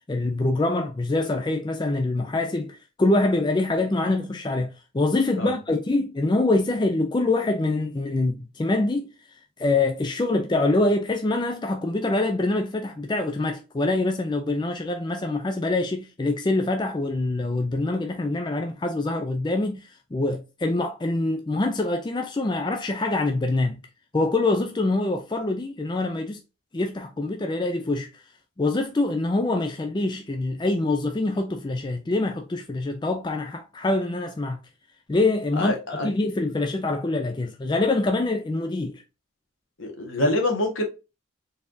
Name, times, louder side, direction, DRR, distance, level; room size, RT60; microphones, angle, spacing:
voice 1, 0.1-9.1 9.6-23.8 24.1-26.4 26.7-28.1 28.6-34.6 35.1-35.7 36.0-39.0, left 2 dB, 20° left, 0.4 m, -25 dB
voice 2, 35.6-36.1 39.8-40.8, left 1 dB, 75° left, 1.5 m, -25 dB
4.3 x 3.4 x 2.6 m
head